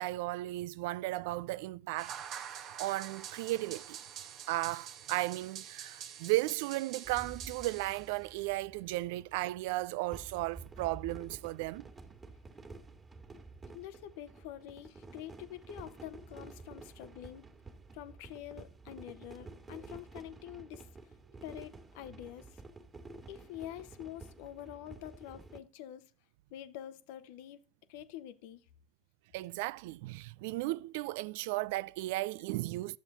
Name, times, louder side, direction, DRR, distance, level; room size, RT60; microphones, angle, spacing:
voice 1, 0.0-2.2 2.8-4.0 4.5-11.9 29.3-33.0, right 19 dB, 65° right, 0.4 m, -35 dB
sound 1, 2.0-8.4, right 9 dB, 45° right, 1.2 m, -46 dB
sound 2, 7.0-25.6, right 3 dB, 20° right, 1.9 m, -51 dB
voice 2, 13.7-17.5 17.9-20.9 21.4-22.6 23.3-26.1 26.5-27.6 27.9-28.6, left 12 dB, 60° left, 1.0 m, -46 dB
11.5 x 7.2 x 4.1 m
hypercardioid pair, 90°, 0 cm